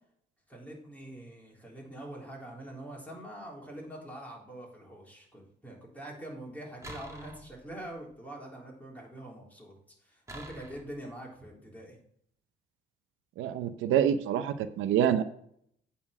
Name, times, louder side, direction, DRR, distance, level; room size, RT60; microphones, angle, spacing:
voice 1, 0.5-9.7 10.0-12.0 15.1-15.2, right 1 dB, 10° left, -3 dB, 3.7 m, -44 dB
sound 1, 6.8-8.0 10.3-11.1, right 1 dB, 15° right, 2.3 m, -46 dB
voice 2, 13.4-15.2, right 9 dB, 90° right, 11 dB, 0.7 m, -26 dB
8.7 x 4.3 x 7.1 m, 0.67 s
cardioid pair, 90°, 20 cm